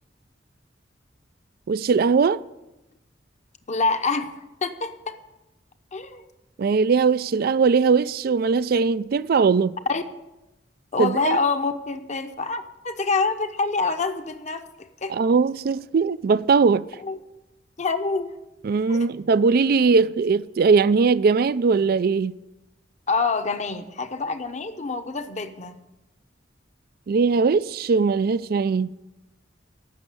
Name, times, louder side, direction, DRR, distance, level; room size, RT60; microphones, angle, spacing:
voice 1, 1.7-2.4 6.6-9.8 11.0-11.4 15.1-16.9 18.6-22.4 27.1-28.9, right 5 dB, 55° right, 0.4 m, -20 dB
voice 2, 3.7-4.3 4.6-5.2 5.9-6.2 9.9-10.0 10.9-14.6 15.0-15.1 17.0-17.2 17.8-18.4 18.9-19.1 23.1-25.8, left 4 dB, 40° left, 0.9 m, -26 dB
14.5 x 6.4 x 8.6 m
head